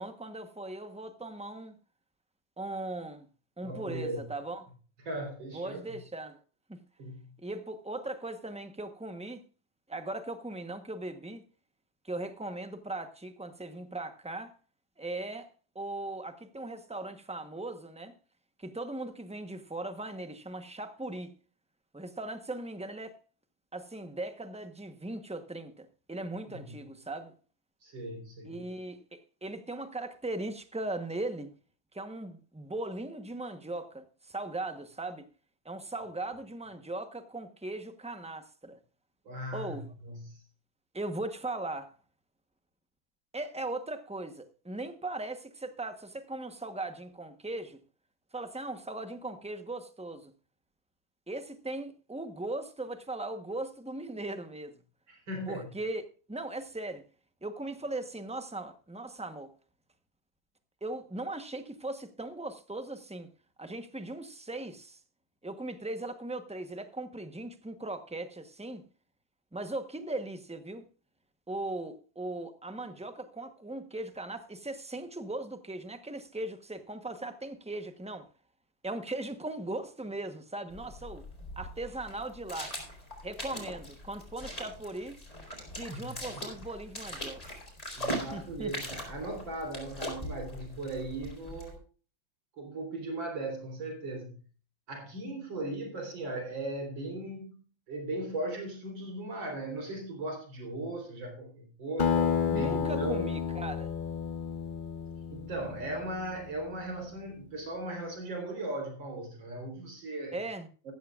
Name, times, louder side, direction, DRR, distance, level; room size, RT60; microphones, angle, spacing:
voice 1, 0.0-1.8 2.6-3.3 3.6-4.7 5.5-6.4 6.7-6.8 7.4-9.4 9.9-11.4 12.0-14.5 15.0-15.5 15.7-18.1 18.6-21.3 21.9-23.2 23.7-27.3 28.4-31.5 31.9-35.3 35.6-38.8 39.5-39.9 40.9-41.9 43.3-47.8 48.3-50.3 51.3-54.8 55.5-57.0 57.4-59.5 60.8-63.3 63.6-65.0 65.4-68.9 69.5-70.8 71.5-78.3 78.8-81.2 81.6-82.7 83.2-85.2 85.8-87.4 88.3-88.7 102.5-104.0 110.3-110.7, right 2 dB, 5° right, 0.5 m, -38 dB
voice 2, 3.6-4.3 5.0-5.8 7.0-7.3 26.5-26.8 27.8-28.6 39.3-40.4 55.1-55.7 85.9-86.2 88.0-91.8 92.6-94.4 94.9-97.6 97.9-103.3 105.3-110.4 110.8-110.9, right 2 dB, 85° right, 4.6 m, -38 dB
sound 1, 80.7-91.8, equal, 20° left, 5.0 m, -41 dB
Acoustic guitar, 102.0-106.8, left 7 dB, 60° left, 0.5 m, -31 dB
14.0 x 14.0 x 2.4 m
omnidirectional pair, 2.0 m